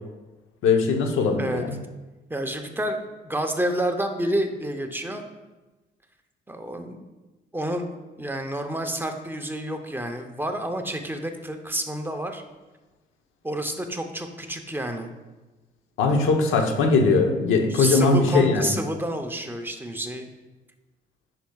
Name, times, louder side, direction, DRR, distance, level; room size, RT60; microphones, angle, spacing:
voice 1, 0.6-1.8 16.0-18.8, left 4 dB, 85° left, 3 dB, 0.9 m, -20 dB
voice 2, 2.3-5.3 6.5-7.0 7.5-7.9 8.2-12.4 13.4-15.1 17.7-20.3, right 1 dB, 10° right, 4 dB, 0.7 m, -29 dB
10.0 x 5.7 x 2.4 m, 1.1 s
cardioid pair, 90°, 20 cm